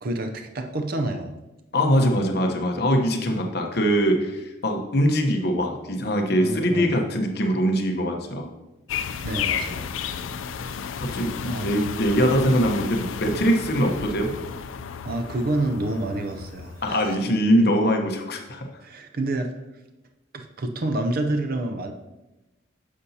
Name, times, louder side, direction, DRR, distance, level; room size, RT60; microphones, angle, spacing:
voice 1, 0.0-1.3 6.4-6.9 9.2-9.9 11.0-11.2 11.4-11.7 15.0-17.1 18.8-19.5 20.3-21.9, right 2 dB, 50° right, 5 dB, 0.6 m, -28 dB
voice 2, 1.7-8.5 11.0-14.3 16.8-18.7, equal, 55° left, 3 dB, 0.9 m, -22 dB
sound 1, 8.9-17.1, left 7 dB, 85° left, 0.4 m, -33 dB
9.8 x 6.8 x 2.8 m, 1.0 s
head